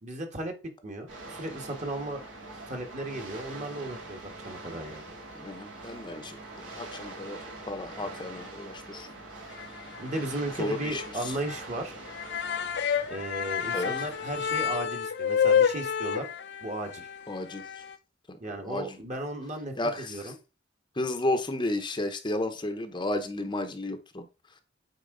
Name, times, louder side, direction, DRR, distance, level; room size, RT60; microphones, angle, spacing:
voice 1, 0.0-0.6 0.8-2.2 2.7-5.0 10.0-11.9 13.1-16.3 16.6-17.1 18.4-20.3, right 1 dB, 40° right, 4 dB, 1.4 m, -35 dB
sound 1, 1.1-14.8, right 2 dB, 80° right, 2.5 m, -44 dB
voice 2, 5.3-6.4 6.8-7.4 7.7-9.1 10.6-11.3 13.7-13.9 17.3-17.6 18.3-18.4 18.6-19.0 19.7-20.3 21.0-24.2, left 1 dB, 25° left, 7 dB, 0.7 m, -32 dB
sound 2, 9.5-10.2 10.4-10.5 11.0-11.1 11.5-11.6 12.0-18.0, left 8 dB, 60° left, 0.5 m, -29 dB
8.5 x 4.5 x 3.8 m, 0.31 s
head